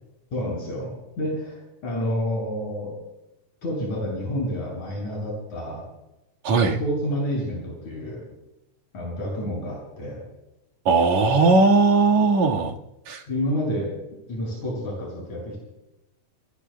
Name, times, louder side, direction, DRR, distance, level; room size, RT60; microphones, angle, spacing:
voice 1, 0.3-3.0 3.6-5.8 6.8-8.2 8.9-10.2 13.3-13.9 14.3-15.6, equal, 75° left, -4 dB, 9.1 m, -29 dB
voice 2, 6.4-6.8 10.9-12.7 13.1-13.2, right 3 dB, 70° right, 0 dB, 3.1 m, -18 dB
29.5 x 21.0 x 2.2 m, 0.93 s
omnidirectional pair, 3.3 m